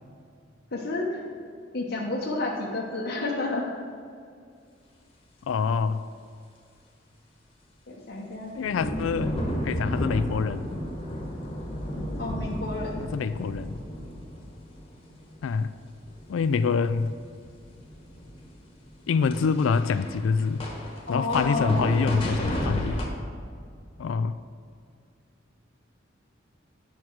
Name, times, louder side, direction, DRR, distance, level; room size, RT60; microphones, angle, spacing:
voice 1, 0.7-1.2 1.7-3.7 7.9-8.5 12.2-13.0 21.1-21.9, left 2 dB, 60° left, -5 dB, 1.0 m, -30 dB
voice 2, 5.5-6.0 8.5-9.3 9.6-10.7 13.0-13.8 15.4-15.7 16.3-17.1 19.1-20.6 21.1-23.0 24.0-24.4, left 5 dB, 90° left, 13 dB, 0.4 m, -25 dB
sound 1, 8.5-15.5 15.8-16.5 16.8-23.0, equal, 30° left, 1.4 m, -33 dB
9.1 x 6.1 x 4.6 m, 2.3 s
head